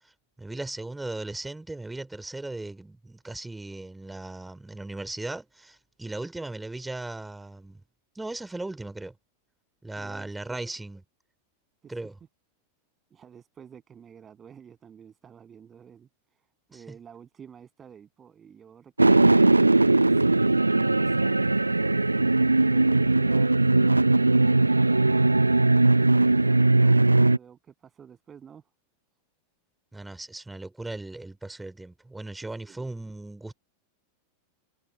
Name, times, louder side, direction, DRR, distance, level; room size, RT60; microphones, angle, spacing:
voice 1, 0.4-7.8 8.2-9.1 9.8-11.0 11.9-12.2 16.7-17.0 29.9-33.5, right 2 dB, 5° right, 3.7 m, -37 dB
voice 2, 9.9-10.7 11.8-11.9 13.1-16.4 16.7-19.7 20.0-28.7 32.6-32.9, right 7 dB, 20° right, 7.6 m, -50 dB
sound 1, 19.0-27.4, right 2 dB, 85° right, 0.5 m, -20 dB
figure-of-eight pair, 90°, 0 cm